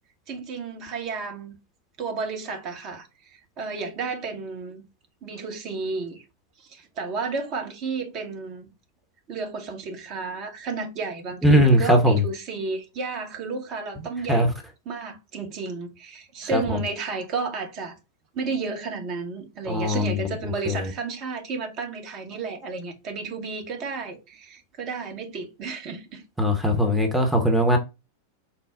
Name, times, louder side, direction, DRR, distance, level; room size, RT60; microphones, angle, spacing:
voice 1, 0.3-1.6 2.0-4.8 5.2-6.2 6.6-8.7 9.3-14.5 14.9-18.0 18.3-26.2, right 4 dB, 35° right, 0.8 m, -32 dB
voice 2, 11.4-12.2 14.3-14.5 16.5-16.8 19.7-20.3 20.7-20.9 26.4-27.8, equal, 5° right, 0.7 m, -20 dB
4.3 x 2.0 x 3.5 m
figure-of-eight pair, 90°, 0 cm